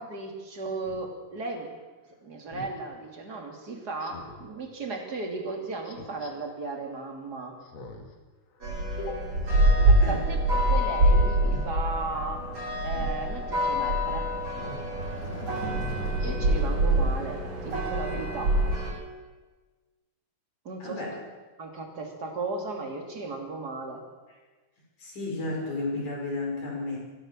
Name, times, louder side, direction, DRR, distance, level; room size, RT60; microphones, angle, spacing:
voice 1, 0.0-1.7 2.2-7.6 9.9-12.4 12.8-14.3 16.2-18.6 20.6-21.1 21.6-24.0, right 3 dB, 30° right, 3 dB, 3.1 m, -35 dB
Speech synthesizer, 0.9-1.0 2.5-2.8 4.0-4.5 5.8-6.3 7.6-8.1 8.5-8.6 9.5-10.0 10.4-10.7 11.3-11.7 12.9-13.2 14.5-14.9 15.4-15.5 16.2-16.7 17.1-17.2, left 2 dB, 60° left, 3.1 m, -43 dB
sound 1, 8.6-18.9, right 1 dB, 55° right, 9.0 m, -25 dB
voice 2, 20.8-21.1 25.0-27.0, left 2 dB, 75° left, -2 dB, 7.2 m, -32 dB
24.0 x 15.5 x 7.5 m, 1.3 s
omnidirectional pair, 3.4 m